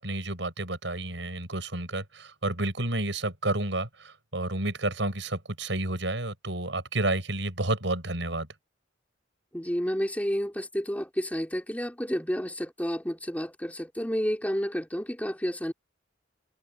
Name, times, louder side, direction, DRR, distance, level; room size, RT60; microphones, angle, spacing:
voice 1, 0.0-8.5, right 2 dB, 75° right, 6.1 m, -30 dB
voice 2, 9.5-15.7, equal, 10° left, 3.4 m, -30 dB
open air
head